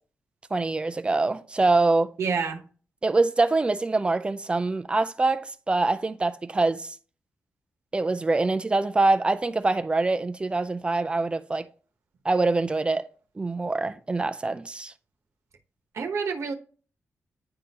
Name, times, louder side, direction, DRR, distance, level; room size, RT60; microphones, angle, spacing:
voice 1, 0.5-2.1 3.0-6.9 7.9-11.7 12.2-13.0 13.4-14.9, right 3 dB, 20° right, 0.4 m, -24 dB
voice 2, 2.2-2.6 15.9-16.5, right 5 dB, 70° right, 1.0 m, -28 dB
9.8 x 3.8 x 2.9 m
wide cardioid pair, 165°, 5 cm